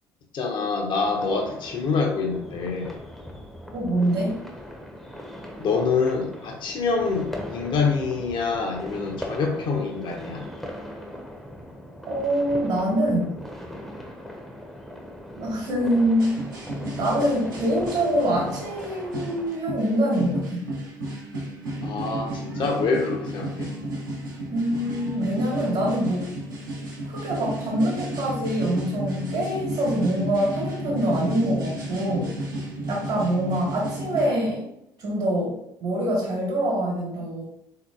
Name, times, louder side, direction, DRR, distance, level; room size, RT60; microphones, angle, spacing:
voice 1, 0.3-3.0 5.6-10.5 21.8-23.7, left 4 dB, 50° left, 2 dB, 0.8 m, -26 dB
sound 1, 1.0-19.5, equal, 5° left, 0.7 m, -39 dB
voice 2, 3.7-4.3 12.1-13.4 15.3-16.3 17.0-20.7 24.5-26.3 27.1-32.3 32.9-34.7 35.0-37.5, right 1 dB, 55° right, -3 dB, 1.2 m, -25 dB
sound 2, 16.2-34.3, right 1 dB, 80° right, 0.9 m, -33 dB
3.8 x 2.9 x 2.4 m, 0.78 s
figure-of-eight pair, 55°, 11 cm